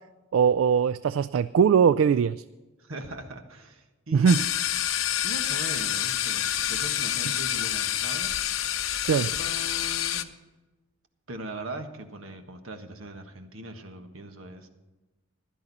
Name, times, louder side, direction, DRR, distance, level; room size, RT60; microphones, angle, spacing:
voice 1, 0.3-2.4 4.1-4.4 9.0-9.3, right 7 dB, 70° right, 16 dB, 0.3 m, -21 dB
voice 2, 2.8-4.4 5.2-8.4 9.2-10.3 11.3-14.7, right 1 dB, 85° right, 6 dB, 1.4 m, -40 dB
sound 1, 4.3-10.2, left 11 dB, 85° left, 0.7 m, -28 dB
15.5 x 12.0 x 4.1 m, 1.1 s
head